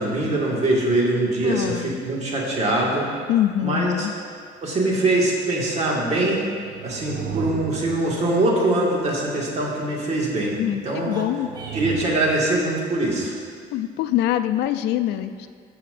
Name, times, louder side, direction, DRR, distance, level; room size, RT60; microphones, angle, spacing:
voice 1, 0.0-3.1 3.6-4.1 4.6-6.4 6.8-10.6 10.8-11.2 11.7-13.3, right 2 dB, 40° right, -3 dB, 1.9 m, -23 dB
voice 2, 1.4-2.0 3.3-4.1 10.6-11.5 13.7-15.5, left 12 dB, 80° left, 10 dB, 0.4 m, -24 dB
sound 1, 6.2-8.9 11.0-12.9, right 11 dB, 65° right, 0.4 m, -35 dB
sound 2, 11.0-12.1, right 1 dB, 25° right, 1.1 m, -39 dB
15.0 x 5.7 x 2.6 m, 2.1 s
cardioid pair, 110°, 17 cm